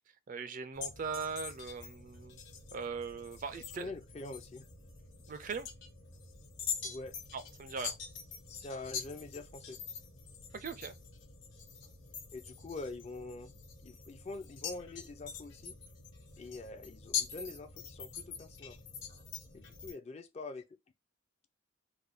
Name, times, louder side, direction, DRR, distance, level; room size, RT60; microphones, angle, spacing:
voice 1, 0.3-2.4 2.7-3.9 5.3-5.7 7.3-8.0 10.5-10.9, right 5 dB, 40° right, 0.4 m, -40 dB
sound 1, 0.7-19.9, left 7 dB, 65° left, 1.1 m, -44 dB
voice 2, 3.8-4.7 6.8-7.1 8.5-9.8 12.3-13.5 13.8-15.8 16.4-18.8 19.5-20.7, left 3 dB, 30° left, 0.4 m, -45 dB
3.3 x 2.2 x 3.3 m
head